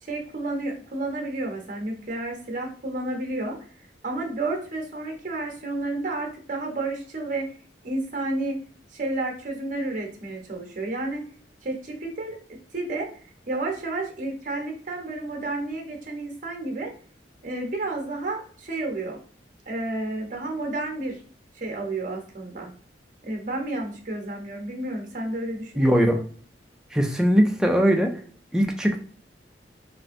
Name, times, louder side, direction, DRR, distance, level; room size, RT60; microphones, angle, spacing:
voice 1, 0.0-3.6 4.0-7.4 7.8-8.6 8.9-11.2 11.6-13.2 13.5-16.9 17.4-19.2 19.7-21.2 21.5-22.7 23.2-26.3, right 2 dB, 45° right, 2 dB, 0.8 m, -31 dB
voice 2, 25.8-26.2 26.9-28.2 28.5-29.0, equal, 5° right, 3 dB, 0.3 m, -20 dB
3.2 x 2.5 x 2.5 m, 0.44 s
head